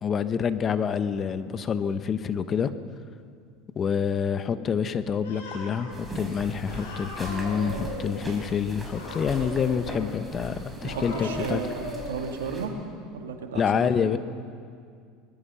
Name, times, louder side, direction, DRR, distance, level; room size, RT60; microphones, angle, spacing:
voice 1, 0.0-2.7 3.7-11.6 13.5-14.2, left 7 dB, 35° left, 12 dB, 1.1 m, -27 dB
Cat, 5.2-5.9 6.7-8.3 8.8-10.1 10.7-12.2, left 2 dB, 85° left, 6.2 m, -37 dB
sound 1, 5.9-12.7, right 2 dB, 10° right, 5.4 m, -40 dB
voice 2, 10.8-12.7 13.1-14.2, right 5 dB, 85° right, 4 dB, 2.2 m, -34 dB
23.5 x 20.0 x 5.7 m, 2.2 s
hypercardioid pair, 85°, 0 cm